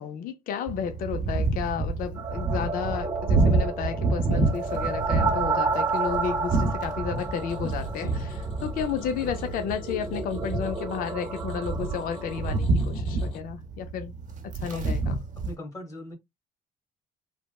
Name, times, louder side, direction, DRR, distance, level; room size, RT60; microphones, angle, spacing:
voice 1, 0.0-14.1 14.4-15.0, left 7 dB, 55° left, 0.4 m, -32 dB
sound 1, 0.7-15.5, right 3 dB, 50° right, 0.8 m, -29 dB
sound 2, 2.2-12.6, right 4 dB, 20° right, 0.6 m, -32 dB
sound 3, 7.2-13.4, left 4 dB, 40° left, 1.8 m, -44 dB
voice 2, 15.4-16.1, left 1 dB, 20° left, 1.2 m, -40 dB
3.2 x 2.0 x 2.2 m
cardioid pair, 110°, 17 cm